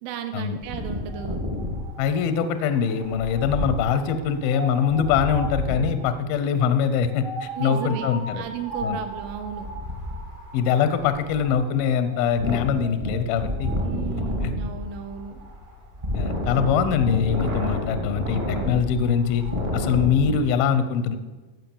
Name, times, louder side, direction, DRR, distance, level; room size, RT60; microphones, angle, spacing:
voice 1, 0.0-1.4 7.6-8.1 8.4-9.7 13.8-15.4, right 9 dB, 85° right, 7 dB, 3.6 m, -34 dB
Wind, 0.6-6.0 7.1-20.4, left 1 dB, 50° right, 0.5 m, -31 dB
voice 2, 2.0-8.4 8.8-9.0 10.5-13.7 14.4-14.5 16.1-19.5 19.7-21.2, left 7 dB, 85° left, 10 dB, 2.1 m, -23 dB
16.5 x 6.1 x 7.1 m, 1.2 s
omnidirectional pair, 5.5 m